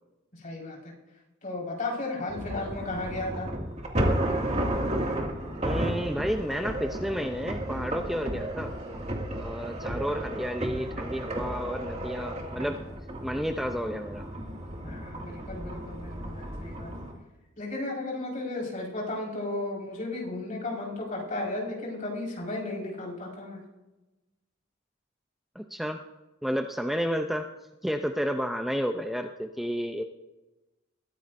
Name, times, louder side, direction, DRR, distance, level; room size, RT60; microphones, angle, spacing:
voice 1, 0.3-0.9 1.4-3.5 14.8-16.9 17.6-23.6, left 2 dB, 45° left, -3 dB, 4.8 m, -34 dB
sound 1, 2.3-17.1, right 1 dB, 35° right, 2.2 m, -33 dB
voice 2, 5.6-8.7 9.3-12.9 13.2-14.3 25.5-26.0 26.4-27.5 27.8-30.0, equal, ahead, 5 dB, 0.5 m, -31 dB
21.5 x 15.0 x 2.6 m, 1.1 s
head